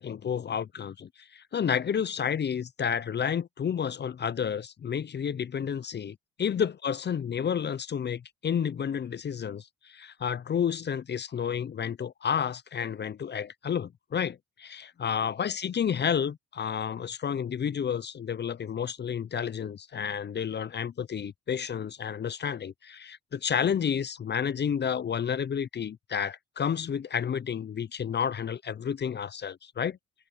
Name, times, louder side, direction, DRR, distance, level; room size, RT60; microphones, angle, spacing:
voice 1, 0.0-30.0, left 7 dB, 35° left, 0.6 m, -31 dB
cardioid pair, 90°, 30 cm